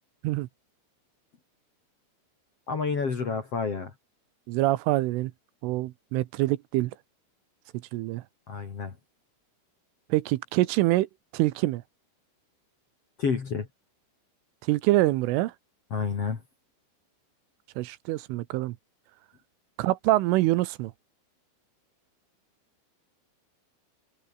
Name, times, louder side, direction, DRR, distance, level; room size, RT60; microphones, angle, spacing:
voice 1, 2.7-3.9 8.5-9.0 13.2-13.7 15.9-16.4, left 5 dB, 40° left, 2.5 m, -29 dB
voice 2, 4.5-5.3 5.6-6.9 7.9-8.2 10.1-11.1 11.3-11.8 14.7-15.5 17.8-18.8 19.8-20.9, right 18 dB, 85° right, 3.4 m, -25 dB
omnidirectional pair, 5.8 m